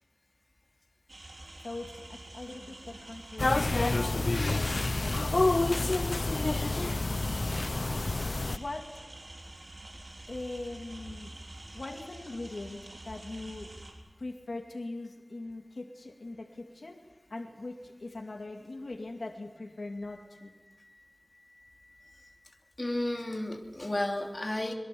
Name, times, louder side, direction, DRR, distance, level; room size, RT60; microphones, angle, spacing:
sound 1, 1.1-13.9, right 1 dB, 70° right, 5.0 m, -47 dB
voice 1, 1.6-5.3 6.5-7.6 8.6-9.0 10.3-11.3 11.7-13.7 14.2-17.0 17.3-20.5, left 2 dB, 85° left, 3 dB, 2.3 m, -41 dB
sound 2, 3.4-8.6, left 2 dB, 65° left, 0.7 m, -28 dB
voice 2, 22.8-24.7, left 1 dB, 40° left, 3 dB, 3.0 m, -33 dB
25.0 x 23.5 x 7.0 m, 1.2 s
wide cardioid pair, 60°, 0 cm